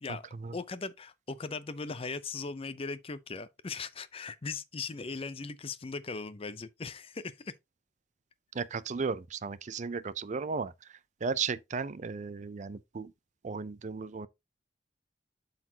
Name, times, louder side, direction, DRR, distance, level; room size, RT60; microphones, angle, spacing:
voice 1, 0.5-7.5, left 4 dB, 35° left, 0.5 m, -39 dB
voice 2, 8.6-10.7 11.2-13.1 13.4-14.3, right 5 dB, 45° right, 0.5 m, -35 dB
12.0 x 4.0 x 2.8 m
head